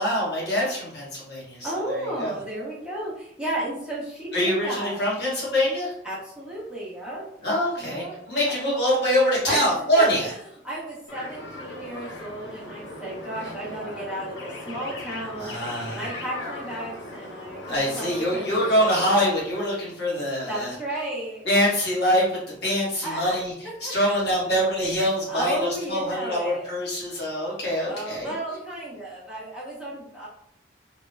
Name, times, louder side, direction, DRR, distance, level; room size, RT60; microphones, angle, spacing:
voice 1, 0.0-2.3 4.3-5.9 7.4-10.3 15.4-16.0 17.7-20.7 21.4-22.3 22.6-28.3, equal, 60° left, -5 dB, 1.1 m, -24 dB
voice 2, 1.6-5.0 6.0-7.3 7.8-8.2 8.4-8.6 9.5-15.6 15.9-18.9 20.5-21.8 23.0-23.4 23.8-24.4 25.3-26.7 27.8-30.3, right 1 dB, 5° right, -9 dB, 0.8 m, -33 dB
sound 1, 11.1-19.2, left 1 dB, 80° left, 0.6 m, -38 dB
2.2 x 2.0 x 3.2 m, 0.70 s
head